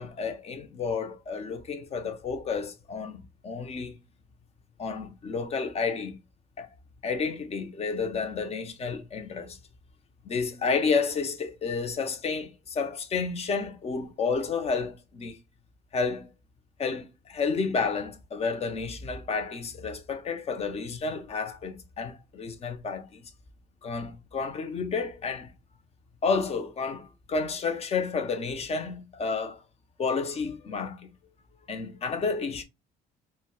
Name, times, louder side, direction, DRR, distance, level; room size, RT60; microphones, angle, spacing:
voice 1, 0.0-4.0 4.8-6.2 6.6-6.7 7.0-9.6 10.2-15.4 15.9-16.3 16.8-23.2 23.8-25.5 26.2-29.6 30.0-31.1 31.7-32.6, left 5 dB, 40° left, 0.7 m, -31 dB
4.0 x 2.1 x 2.3 m
cardioid pair, 110°, 17 cm